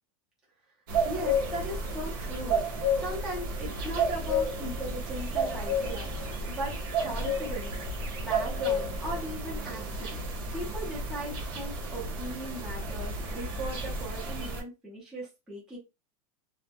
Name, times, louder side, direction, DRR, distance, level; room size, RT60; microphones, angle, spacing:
sound 1, 0.9-14.6, equal, 45° right, 0.7 m, -31 dB
voice 1, 1.0-15.8, right 1 dB, 5° right, 0.6 m, -39 dB
2.1 x 2.0 x 2.8 m
supercardioid pair, 180°, 19 cm